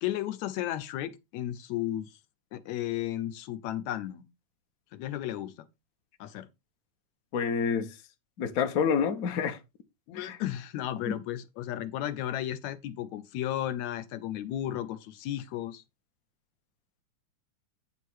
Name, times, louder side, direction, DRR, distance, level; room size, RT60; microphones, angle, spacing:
voice 1, 0.0-2.2 2.5-4.2 4.9-5.5 6.2-6.5 10.1-15.8, left 12 dB, 75° left, 1.9 m, -34 dB
voice 2, 7.3-7.9 8.4-9.6 10.1-10.4 11.0-11.1, left 6 dB, 55° left, 0.9 m, -28 dB
9.8 x 3.7 x 6.2 m
omnidirectional pair, 3.4 m